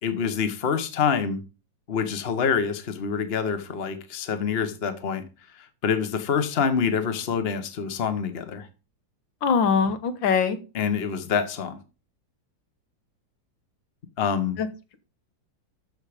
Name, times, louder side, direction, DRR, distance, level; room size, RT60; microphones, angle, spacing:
voice 1, 0.0-1.4 1.9-5.2 5.8-8.7 10.7-11.8 14.2-14.6, left 6 dB, 35° left, 1.3 m, -26 dB
voice 2, 9.4-10.6 14.6-14.7, left 6 dB, 80° left, 1.9 m, -22 dB
13.0 x 5.6 x 5.0 m
omnidirectional pair, 2.0 m